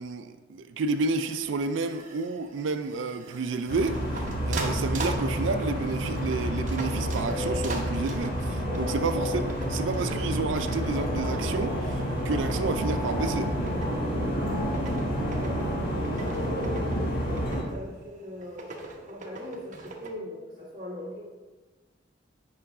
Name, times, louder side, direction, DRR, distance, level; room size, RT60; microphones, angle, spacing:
voice 1, 0.0-13.5, right 3 dB, 85° right, 9 dB, 0.4 m, -30 dB
sound 1, 0.9-20.1, right 2 dB, 40° right, 1.0 m, -42 dB
sound 2, 3.7-17.6, equal, 55° left, 1.5 m, -29 dB
voice 2, 14.1-14.7 15.2-15.9 16.2-21.2, left 1 dB, 25° right, -12 dB, 2.1 m, -41 dB
8.6 x 5.6 x 3.7 m, 1.3 s
head